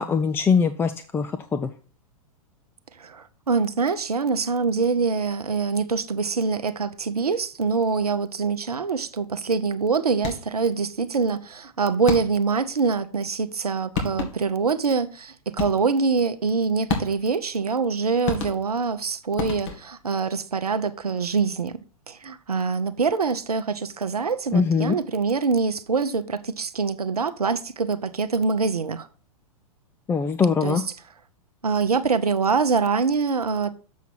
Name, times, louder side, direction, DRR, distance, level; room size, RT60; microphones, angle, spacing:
voice 1, 0.0-1.7 24.5-25.0 30.1-30.8, left 5 dB, 10° left, 0.4 m, -22 dB
voice 2, 3.0-21.7 22.1-29.1 30.6-30.8 31.6-33.7, right 4 dB, 90° right, 0.7 m, -24 dB
sound 1, 10.2-10.7 12.1-12.6 13.6-13.7 13.9-14.6 15.6-16.0 16.9-17.4 18.2-18.9 19.4-20.1, left 5 dB, 55° left, 2.1 m, -31 dB
7.3 x 5.8 x 4.4 m
figure-of-eight pair, 105°, 19 cm